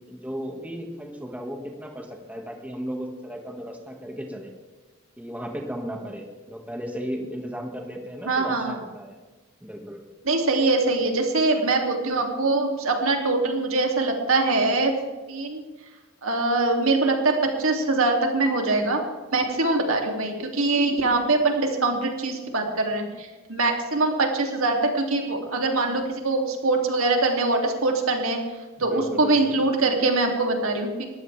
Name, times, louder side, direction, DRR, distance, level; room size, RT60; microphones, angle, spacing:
voice 1, 0.1-4.5 5.2-9.2 9.6-10.0 28.8-29.6, equal, 5° right, 1 dB, 2.0 m, -35 dB
voice 2, 8.2-8.8 10.2-14.9 15.3-15.6 16.2-19.0 19.3-31.1, right 2 dB, 75° right, 2 dB, 2.9 m, -23 dB
21.5 x 15.0 x 3.5 m, 1.3 s
head